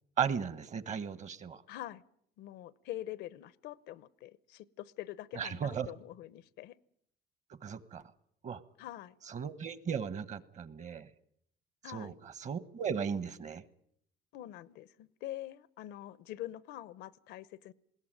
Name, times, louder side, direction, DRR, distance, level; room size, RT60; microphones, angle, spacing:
voice 1, 0.2-1.6 5.3-5.9 7.6-8.0 8.4-8.6 9.3-11.1 11.9-13.6, right 7 dB, 45° right, 16 dB, 1.2 m, -36 dB
voice 2, 1.7-2.0 2.4-6.8 8.8-9.1 11.8-12.2 14.3-17.7, left 14 dB, 85° left, 20 dB, 0.8 m, -45 dB
20.5 x 17.0 x 9.1 m, 0.71 s
cardioid pair, 110°, 17 cm